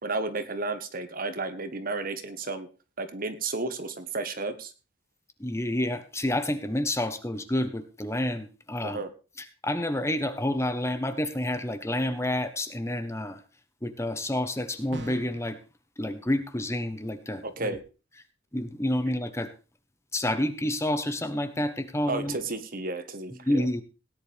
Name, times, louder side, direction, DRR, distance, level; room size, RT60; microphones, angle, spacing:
voice 1, 0.0-2.7 3.0-4.7 8.8-9.1 17.4-17.8 22.1-23.7, right 3 dB, 45° right, 10 dB, 1.5 m, -32 dB
voice 2, 5.4-9.0 9.6-13.4 13.8-15.6 16.0-17.8 18.5-19.5 20.1-22.4 23.4-23.8, left 1 dB, 15° left, 10 dB, 1.2 m, -29 dB
sound 1, 14.9-15.5, right 2 dB, 65° right, 2.9 m, -40 dB
17.5 x 10.5 x 3.5 m, 0.33 s
head